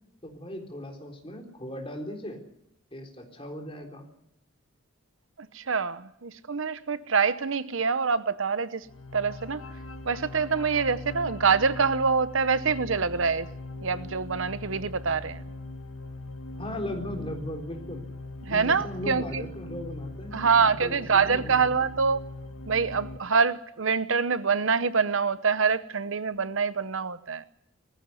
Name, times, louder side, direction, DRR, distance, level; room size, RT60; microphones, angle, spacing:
voice 1, 0.2-2.4 2.9-4.1 16.6-18.1 18.5-21.7, left 1 dB, 25° left, 3 dB, 3.8 m, -38 dB
voice 2, 5.4-8.9 9.1-9.6 10.0-13.5 13.8-15.4 18.4-19.4 20.3-22.2 22.7-27.5, right 5 dB, 70° right, 15 dB, 0.9 m, -25 dB
sound 1, 8.8-23.2, left 2 dB, 85° left, 1.7 m, -40 dB
20.0 x 15.5 x 9.7 m, 0.78 s
head